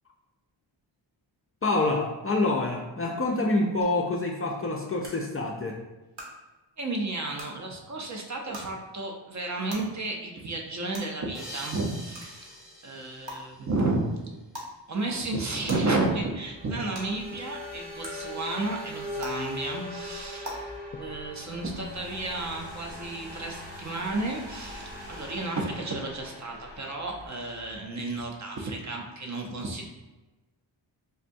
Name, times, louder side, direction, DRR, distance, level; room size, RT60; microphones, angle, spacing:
voice 1, 1.6-5.8, left 2 dB, 30° left, -1 dB, 0.4 m, -27 dB
sound 1, 3.8-3.9 5.0-5.1 6.1-6.2 7.3-7.5 8.5-8.6 9.7-9.8 10.9-11.0 12.1-12.3 13.3-13.4 14.5-14.7 15.7-15.8 16.9-17.0 18.0-18.1 19.2-19.3 20.4-20.5, right 1 dB, 60° right, 1.0 m, -38 dB
voice 2, 6.8-12.6 12.8-14.1 14.9-20.7 21.0-29.9, right 2 dB, 40° right, 1 dB, 0.5 m, -32 dB
sound 2, 11.3-14.4, equal, ahead, 0.7 m, -45 dB
sound 3, 15.5-27.9, left 2 dB, 85° right, 1.4 m, -41 dB
3.5 x 2.1 x 2.6 m, 1.1 s
cardioid pair, 65°, 48 cm